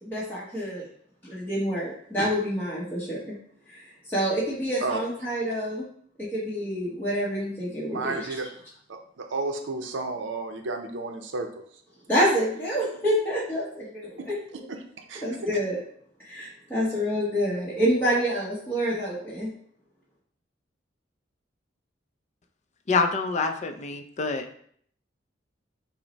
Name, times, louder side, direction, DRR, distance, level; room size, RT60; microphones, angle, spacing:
voice 1, 0.0-0.9 1.3-3.3 3.7-3.8 4.1-5.8 6.2-8.2 12.1-14.2 15.2-15.8 16.2-19.5, equal, 10° left, -9 dB, 1.0 m, -27 dB
voice 2, 7.9-8.5 8.9-11.8 14.2-14.3 14.7-15.3, right 3 dB, 75° right, 5 dB, 0.6 m, -32 dB
voice 3, 22.9-24.4, left 4 dB, 40° left, 6 dB, 0.5 m, -26 dB
5.8 x 2.1 x 4.0 m, 0.63 s
head